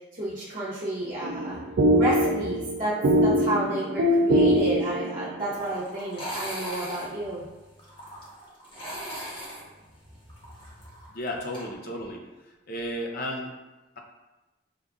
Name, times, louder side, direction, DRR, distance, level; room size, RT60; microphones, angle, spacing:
voice 1, 0.1-1.6 1.9-7.4, right 1 dB, 45° right, -8 dB, 1.0 m, -31 dB
sound 1, 1.2-5.5, equal, 80° right, 0.5 m, -23 dB
sound 2, 5.5-11.6, equal, 30° left, 1.1 m, -39 dB
voice 2, 11.1-12.2 12.7-13.5, equal, 55° left, 1 dB, 0.7 m, -33 dB
5.3 x 2.5 x 3.5 m, 1.1 s
head